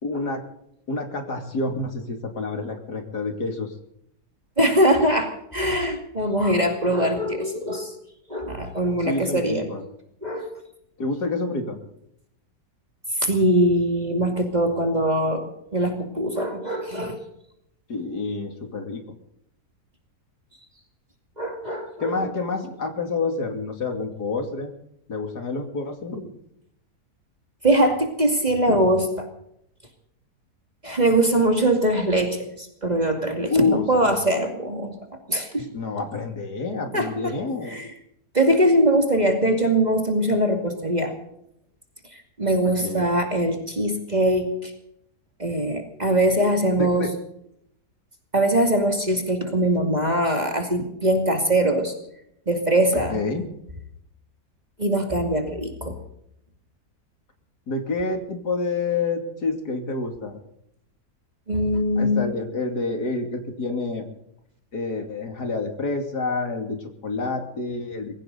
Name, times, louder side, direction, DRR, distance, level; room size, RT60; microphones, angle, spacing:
voice 1, 0.0-0.4 0.9-3.7 9.0-9.8 11.0-11.8 17.9-19.0 22.0-24.7 25.1-26.3 28.7-28.9 33.5-34.2 35.7-37.8 42.6-43.1 46.7-47.1 53.1-53.5 57.7-60.4 62.0-64.1 64.7-68.1, left 3 dB, 80° left, 4 dB, 3.3 m, -28 dB
voice 2, 4.6-7.9 8.3-9.6 10.2-10.5 13.2-17.2 21.4-22.3 27.6-29.3 30.8-34.9 35.3-35.7 36.9-37.3 37.7-37.9 38.3-41.1 42.4-44.7 45.4-47.1 48.3-51.9 52.5-53.2 54.8-56.0 61.5-62.2, right 1 dB, 25° right, 3 dB, 2.5 m, -22 dB
21.5 x 16.5 x 4.0 m, 0.75 s
omnidirectional pair, 1.7 m